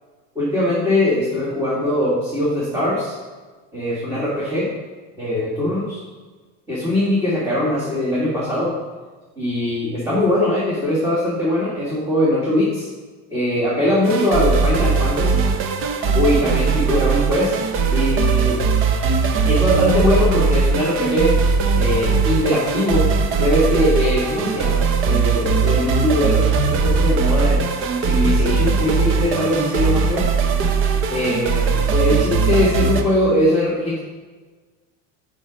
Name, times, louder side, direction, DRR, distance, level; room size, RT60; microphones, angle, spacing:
voice 1, 0.3-3.2 3.7-4.7 5.2-6.0 6.7-8.7 9.4-12.9 13.3-15.4 16.1-17.5 17.9-18.6 19.4-21.3 21.7-23.1 23.4-27.6 28.0-30.2 31.1-34.0, left 1 dB, 10° right, -8 dB, 1.6 m, -21 dB
sound 1, 14.0-33.0, right 5 dB, 35° right, 0.6 m, -19 dB
7.5 x 5.2 x 5.0 m, 1.3 s
cardioid pair, 165°, 36 cm